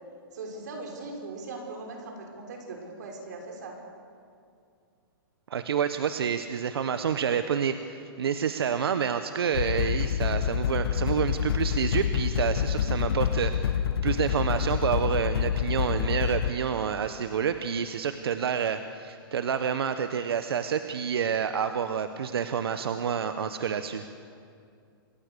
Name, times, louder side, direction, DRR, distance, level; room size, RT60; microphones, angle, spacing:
voice 1, 0.3-3.8, right 3 dB, 45° right, 1 dB, 5.5 m, -39 dB
voice 2, 5.5-24.0, right 7 dB, 85° right, 9 dB, 1.2 m, -28 dB
sound 1, 9.5-16.5, left 8 dB, 85° left, 0.9 m, -27 dB
27.5 x 20.0 x 6.9 m, 2.4 s
hypercardioid pair, 180°, 13 cm